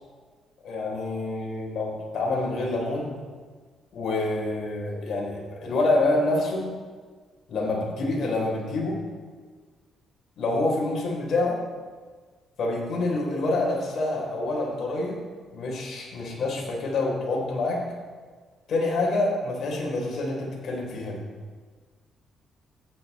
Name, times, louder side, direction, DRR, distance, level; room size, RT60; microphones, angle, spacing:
voice 1, 0.6-3.2 3.9-6.8 7.5-9.0 10.4-11.6 12.6-15.2 15.5-17.9 18.7-21.3, left 2 dB, 60° left, -2 dB, 3.8 m, -27 dB
14.0 x 9.5 x 4.2 m, 1.5 s
cardioid pair, 90°, 0 cm